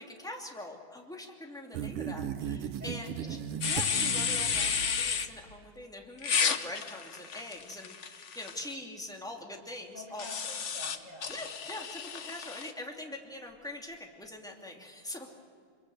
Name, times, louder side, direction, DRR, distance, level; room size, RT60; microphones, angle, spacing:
voice 1, 0.0-3.4 3.7-10.3 11.3-15.3, left 1 dB, ahead, 1 dB, 2.6 m, -43 dB
sound 1, 1.7-5.5, right 8 dB, 90° right, 1.9 m, -37 dB
sound 2, 3.6-5.3 6.2-8.7 10.2-12.7, left 6 dB, 50° left, 0.9 m, -32 dB
voice 2, 9.9-11.3, left 1 dB, 35° right, -2 dB, 8.1 m, -48 dB
26.0 x 22.5 x 7.9 m, 2.2 s
omnidirectional pair, 2.4 m